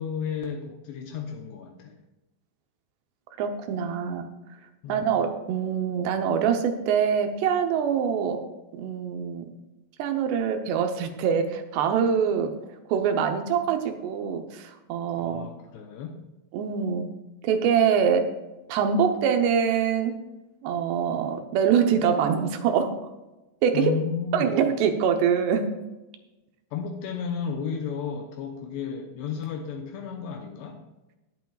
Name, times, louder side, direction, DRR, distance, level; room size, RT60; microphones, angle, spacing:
voice 1, 0.0-2.0 4.8-5.1 15.2-16.2 23.7-24.5 26.7-30.8, left 6 dB, 80° left, 2 dB, 2.9 m, -33 dB
voice 2, 3.4-4.3 4.9-8.4 8.7-9.5 10.0-12.6 12.9-15.5 16.5-17.1 17.4-18.3 18.7-20.1 20.6-23.0 23.6-23.9 24.3-25.7, right 7 dB, 75° right, 6 dB, 2.9 m, -24 dB
19.5 x 8.2 x 2.4 m, 1.0 s
omnidirectional pair, 5.1 m